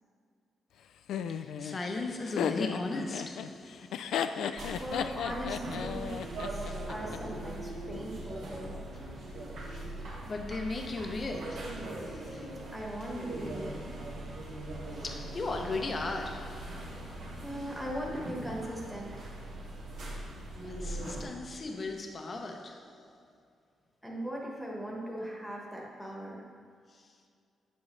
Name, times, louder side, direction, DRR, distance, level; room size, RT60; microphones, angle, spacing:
Laughter, 1.1-7.2, left 8 dB, 85° left, 0.3 m, -35 dB
voice 1, 1.3-4.6 6.7-6.8 10.3-12.6 15.0-17.4 20.6-23.2 26.9-27.1, left 3 dB, 30° left, 0.6 m, -38 dB
sound 1, 4.6-21.2, right 1 dB, 70° right, 1.8 m, -41 dB
voice 2, 4.8-6.1 6.5-8.8 12.7-14.0 17.4-19.3 24.0-26.4, equal, ahead, 1.2 m, -39 dB
9.1 x 7.3 x 3.2 m
wide cardioid pair, 170°, 0 cm